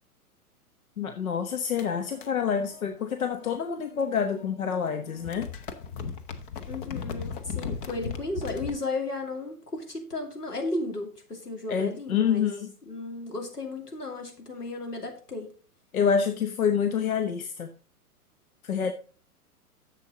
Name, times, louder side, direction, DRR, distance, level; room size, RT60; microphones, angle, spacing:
voice 1, 1.0-5.5 11.7-12.7 15.9-17.7 18.6-18.9, left 7 dB, 65° left, 7 dB, 1.1 m, -27 dB
sound 1, 1.7-4.4 4.7-8.8, left 6 dB, 35° left, 1.0 m, -38 dB
voice 2, 6.7-12.5 12.9-15.5, left 2 dB, 85° left, 2 dB, 2.9 m, -34 dB
10.5 x 7.5 x 3.9 m, 0.38 s
figure-of-eight pair, 115°, 45 cm